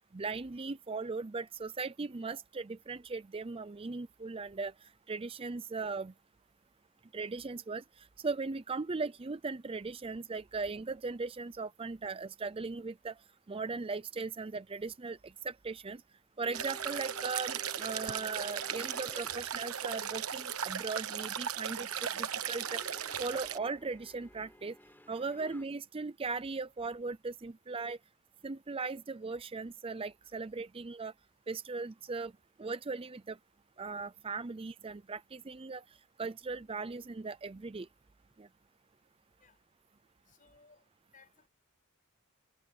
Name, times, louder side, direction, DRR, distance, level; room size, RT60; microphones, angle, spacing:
voice 1, 0.1-4.7 5.1-6.1 7.1-13.1 13.5-16.0 16.4-22.8 23.2-24.7 25.1-28.0 28.4-31.1 31.5-32.3 32.6-33.4 33.8-35.8 36.2-37.9 38.4-38.5, right 4 dB, 25° right, 0.5 m, -38 dB
sound 1, 16.4-25.6, left 1 dB, 10° left, 7.7 m, -54 dB
sound 2, 16.5-23.6, right 8 dB, 85° right, 1.2 m, -37 dB
voice 2, 40.3-40.8 41.1-41.5, left 4 dB, 40° left, 5.7 m, -62 dB
head